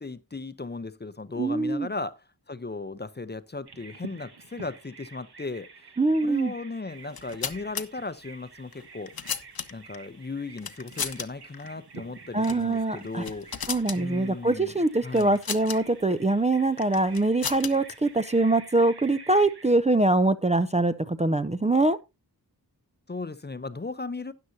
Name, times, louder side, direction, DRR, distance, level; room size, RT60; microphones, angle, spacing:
voice 1, 0.0-5.7 6.2-9.3 9.7-14.7 15.0-15.3 23.1-24.3, left 3 dB, 25° left, 0.6 m, -36 dB
voice 2, 1.4-1.9 6.0-6.5 12.3-13.2 13.7-22.0, right 2 dB, 20° right, 0.5 m, -23 dB
Bird vocalization bird call bird song, 3.7-19.7, right 4 dB, 75° right, 1.6 m, -49 dB
sound 1, 7.0-7.8 8.7-10.0 10.6-11.3 11.5-11.7 12.4-12.7 13.0-14.0 15.2-15.8 16.8-17.9, left 6 dB, 65° left, 1.0 m, -34 dB
13.0 x 9.4 x 2.7 m
wide cardioid pair, 95°, 39 cm